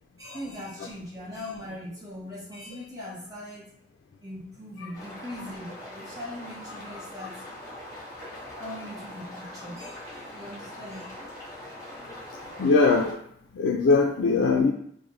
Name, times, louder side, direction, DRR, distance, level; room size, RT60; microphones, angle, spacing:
voice 1, 0.2-3.7 4.2-7.4 8.6-11.2, left 1 dB, 20° right, -7 dB, 1.0 m, -40 dB
sound 1, 4.9-13.1, left 1 dB, 20° left, 1.4 m, -42 dB
voice 2, 12.6-13.2 13.5-14.7, left 4 dB, 85° left, 1 dB, 0.3 m, -21 dB
3.2 x 2.1 x 3.8 m, 0.68 s
head